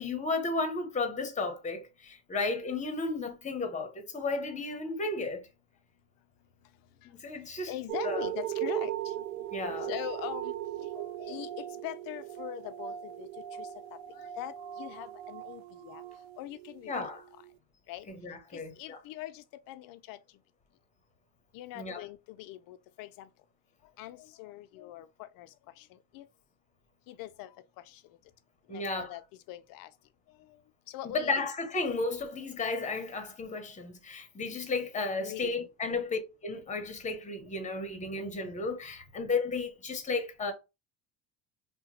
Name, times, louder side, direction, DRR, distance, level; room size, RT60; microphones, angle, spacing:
voice 1, 0.0-5.4 7.0-7.7 8.0-8.3 9.5-9.9 16.9-17.2 18.1-19.0 21.7-22.0 28.7-29.1 31.0-40.5, left 3 dB, 15° left, 0.9 m, -33 dB
voice 2, 7.7-9.1 9.8-13.7 14.1-16.0 16.4-17.1 17.9-18.1 18.5-20.2 21.5-23.3 24.0-26.3 27.1-27.5 27.8-28.0 28.7-29.9 30.5-30.6 30.9-31.5 35.2-35.7, left 14 dB, 55° left, 0.5 m, -42 dB
sound 1, 7.9-16.8 17.4-17.5, right 13 dB, 60° right, 0.5 m, -38 dB
2.8 x 2.2 x 3.8 m
supercardioid pair, 100°, 42 cm